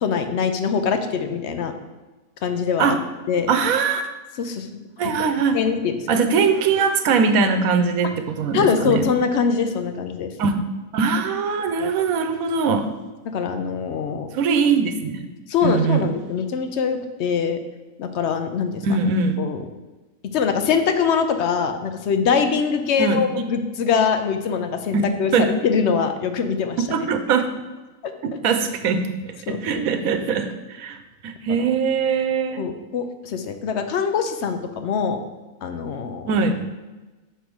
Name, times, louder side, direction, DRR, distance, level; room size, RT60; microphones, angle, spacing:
voice 1, 0.0-1.7 2.4-3.0 3.3-3.5 4.4-5.3 5.5-6.3 8.5-10.3 11.8-11.9 13.3-14.3 15.5-17.6 18.0-18.8 19.4-19.6 20.3-26.8 29.5-29.9 31.5-31.6 32.6-35.2 35.6-36.4, left 6 dB, 60° left, 8 dB, 0.8 m, -23 dB
voice 2, 3.5-4.1 5.0-5.6 6.1-9.1 10.4-10.5 10.9-12.8 14.3-15.3 15.6-16.1 18.8-19.4 23.0-23.2 24.9-25.1 25.3-25.5 26.9-27.4 28.2-31.0 31.2-32.6 36.3-36.6, right 5 dB, 85° right, 7 dB, 1.1 m, -21 dB
6.5 x 3.4 x 6.1 m, 1.2 s
omnidirectional pair, 1.4 m